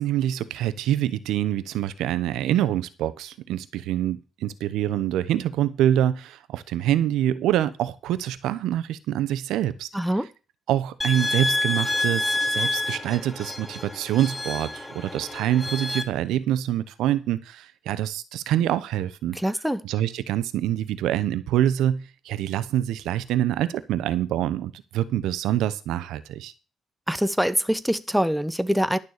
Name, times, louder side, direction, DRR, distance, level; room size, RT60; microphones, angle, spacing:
voice 1, 0.0-9.9 10.7-19.4 19.8-26.5, right 12 dB, 90° right, 0.9 m, -25 dB
voice 2, 9.9-10.3 19.3-19.8 27.1-29.0, equal, ahead, 0.9 m, -24 dB
sound 1, 11.0-16.0, left 2 dB, 15° left, 1.2 m, -28 dB
11.5 x 6.8 x 6.6 m
cardioid pair, 90°, 0 cm